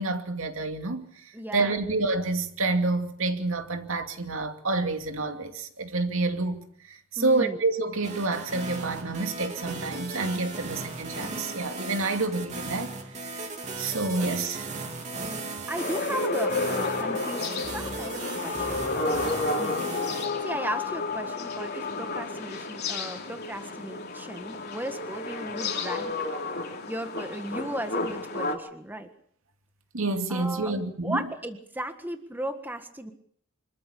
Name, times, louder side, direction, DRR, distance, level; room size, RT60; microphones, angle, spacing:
voice 1, 0.0-6.6 6.9-13.5 13.8-14.7 29.9-31.3, right 3 dB, 70° right, 2.5 m, -28 dB
voice 2, 1.3-1.8 7.2-7.6 10.5-10.6 14.2-14.3 15.2-15.3 15.7-26.1 26.9-29.1 30.3-30.7 31.0-33.1, right 1 dB, 10° right, 1.6 m, -36 dB
sound 1, 8.0-20.3, right 2 dB, 35° right, 3.2 m, -37 dB
sound 2, 15.8-28.6, left 3 dB, 50° left, 3.0 m, -31 dB
25.5 x 14.0 x 8.6 m
head